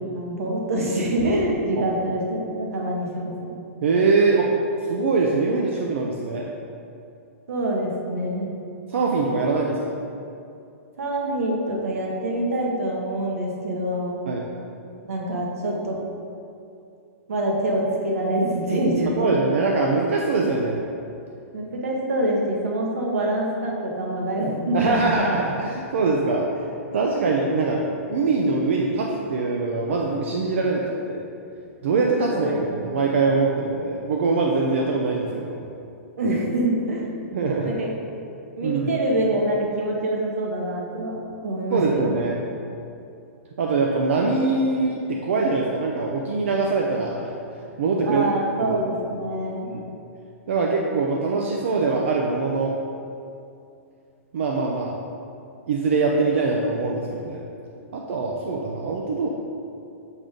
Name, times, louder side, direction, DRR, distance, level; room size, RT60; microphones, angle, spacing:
voice 1, 0.2-3.5 7.5-8.5 11.0-14.2 15.0-16.0 17.3-19.6 21.5-25.1 32.3-32.9 36.2-37.1 37.6-37.9 38.6-41.2 41.4-42.3 48.0-49.7, right 1 dB, 75° right, -1 dB, 1.4 m, -25 dB
voice 2, 3.8-4.5 4.9-6.5 8.9-9.9 14.3-14.5 19.2-20.8 24.7-26.5 26.9-27.8 28.1-31.2 31.8-32.5 32.8-35.6 37.3-37.7 38.6-39.0 41.7-42.4 43.6-47.3 47.8-48.2 48.6-48.8 49.6-49.9 50.5-52.7 54.3-55.0 55.7-57.4 57.9-59.3, right 3 dB, 55° right, -1 dB, 0.6 m, -23 dB
6.1 x 3.8 x 5.1 m, 2.6 s
hypercardioid pair, 180°, 8 cm